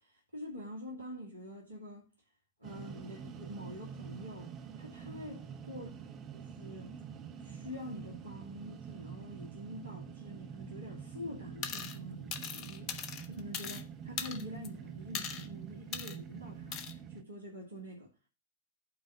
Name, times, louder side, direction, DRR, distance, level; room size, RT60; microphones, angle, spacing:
voice 1, 0.3-2.1 2.6-5.9 6.3-6.9 7.4-18.1, equal, 80° right, 2.4 m, -46 dB
sound 1, 2.6-17.2, right 7 dB, 35° right, 1.1 m, -46 dB
sound 2, 11.6-12.0 12.3-13.8 14.2-14.7 15.1-15.5 15.9-16.2 16.7-16.9, left 7 dB, 40° left, 1.1 m, -39 dB
8.6 x 4.0 x 7.0 m
figure-of-eight pair, 90°, 0 cm